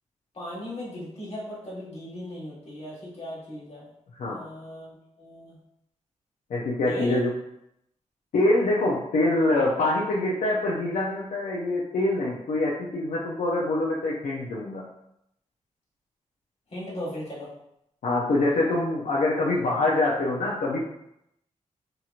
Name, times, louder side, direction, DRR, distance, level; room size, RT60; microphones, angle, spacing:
voice 1, 0.3-3.9 4.3-5.6 6.9-7.2 16.7-17.5, left 1 dB, 50° left, -7 dB, 1.4 m, -37 dB
voice 2, 6.5-7.3 8.3-14.8 18.0-20.8, left 2 dB, 85° left, -5 dB, 0.5 m, -25 dB
2.9 x 2.8 x 2.4 m, 0.79 s
wide cardioid pair, 95°, 13 cm